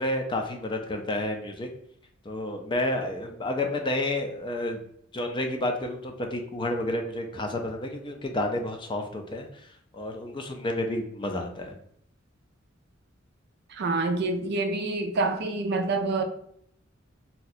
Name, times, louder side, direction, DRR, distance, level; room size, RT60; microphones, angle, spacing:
voice 1, 0.0-1.7 2.3-4.8 5.1-9.5 9.9-11.7, left 1 dB, 25° left, 3 dB, 0.4 m, -30 dB
voice 2, 13.8-16.2, right 3 dB, 55° right, 6 dB, 0.4 m, -27 dB
2.7 x 2.2 x 4.0 m, 0.71 s
head